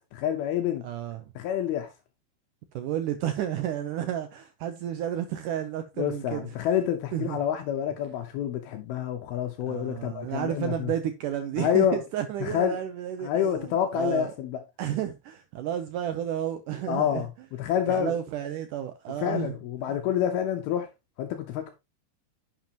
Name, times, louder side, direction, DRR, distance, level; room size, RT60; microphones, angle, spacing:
voice 1, 0.1-0.9 1.4-1.9 6.0-10.9 11.6-12.0 12.4-12.8 13.2-14.6 16.9-18.1 19.2-20.9 21.2-21.7, left 9 dB, 75° left, 2.7 m, -28 dB
voice 2, 0.8-1.3 2.7-6.5 7.1-7.4 9.6-14.3 14.8-17.2 17.9-19.6 19.9-20.0, right 10 dB, 80° right, 1.8 m, -32 dB
10.5 x 7.5 x 2.9 m
omnidirectional pair, 4.6 m